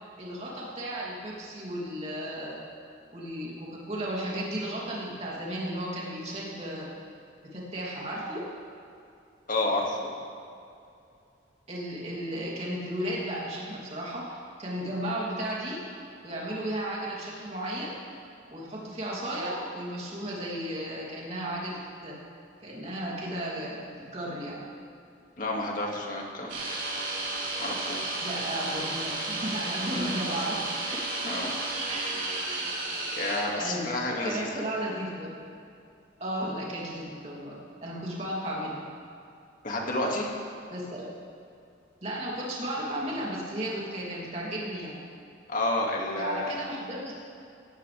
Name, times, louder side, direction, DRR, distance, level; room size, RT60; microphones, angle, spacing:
voice 1, 0.2-2.6 3.1-6.9 7.4-8.5 11.7-15.8 16.2-18.0 18.5-22.2 22.6-24.6 28.2-31.5 31.9-32.2 33.5-33.9 34.2-35.3 36.2-38.8 40.7-41.1 42.0-45.0 46.1-47.1, right 1 dB, 35° right, -5 dB, 3.1 m, -34 dB
voice 2, 9.5-10.1 25.4-26.8 27.6-28.2 31.3-31.5 32.5-32.8 33.2-34.6 39.6-40.3 45.5-46.5, left 2 dB, 45° left, -1 dB, 2.2 m, -30 dB
sound 1, 26.5-33.4, right 2 dB, 70° right, 4.2 m, -32 dB
16.5 x 16.0 x 3.5 m, 2.5 s
head